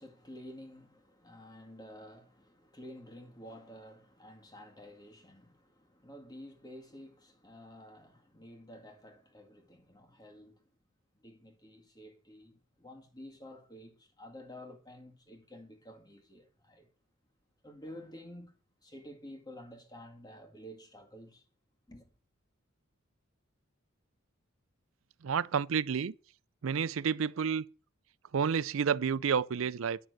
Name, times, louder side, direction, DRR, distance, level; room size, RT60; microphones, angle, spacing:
voice 1, 0.0-10.6 11.1-16.9 17.6-18.5 18.8-21.5 21.9-22.1, equal, 20° left, 2.1 m, -51 dB
voice 2, 25.2-26.1 26.6-27.6 28.3-30.0, right 6 dB, 70° right, 0.4 m, -30 dB
10.5 x 6.4 x 8.0 m
head